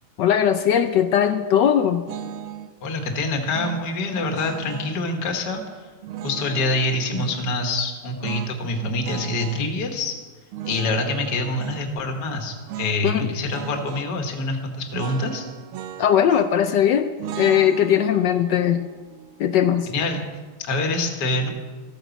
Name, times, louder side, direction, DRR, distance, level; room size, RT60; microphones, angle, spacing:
voice 1, 0.2-2.0 13.0-13.3 16.0-18.9 19.4-19.9, left 9 dB, 75° left, 9 dB, 1.0 m, -19 dB
sound 1, 2.1-2.7 3.5-5.0 6.0-7.4 8.2-9.7 10.5-11.9 12.7-13.0 13.3-14.1 14.9-16.7 17.2-20.3, right 9 dB, 80° right, 1.5 m, -36 dB
voice 2, 2.8-5.9 6.2-10.2 10.7-15.5 19.9-20.2 20.6-21.5, left 2 dB, 50° left, 4 dB, 2.0 m, -26 dB
14.0 x 9.2 x 7.1 m, 1.4 s
omnidirectional pair, 2.4 m